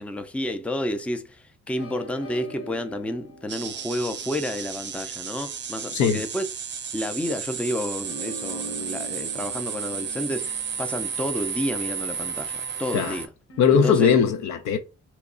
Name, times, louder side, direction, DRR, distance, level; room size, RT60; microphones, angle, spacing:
voice 1, 0.0-6.5 6.9-13.3 13.7-14.1, left 1 dB, 5° left, 0.4 m, -30 dB
sound 1, 1.8-6.3 8.0-12.2 13.5-14.2, left 2 dB, 50° left, 1.2 m, -42 dB
sound 2, 3.5-13.3, right 7 dB, 35° right, 0.6 m, -33 dB
voice 2, 5.9-6.2 12.9-13.2 13.6-14.8, left 7 dB, 70° left, 0.6 m, -19 dB
2.9 x 2.3 x 3.7 m
cardioid pair, 90°, 30 cm